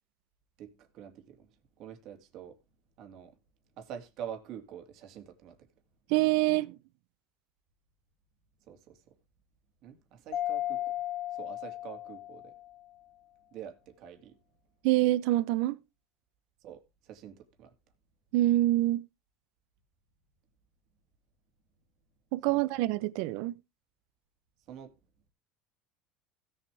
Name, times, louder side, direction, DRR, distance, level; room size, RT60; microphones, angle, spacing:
voice 1, 0.6-1.5 1.8-2.6 3.0-3.3 3.8-5.7 8.7-9.1 9.8-10.9 11.3-12.5 13.5-14.4 16.6-17.7 22.5-22.6 24.7-24.9, right 9 dB, 55° right, 2.5 m, -46 dB
voice 2, 6.1-6.8 14.8-15.8 18.3-19.1 22.3-23.5, right 16 dB, 70° right, 0.7 m, -26 dB
Mallet percussion, 10.3-12.8, left 13 dB, 70° left, 2.6 m, -35 dB
16.0 x 7.2 x 3.4 m
supercardioid pair, 120°, 0 cm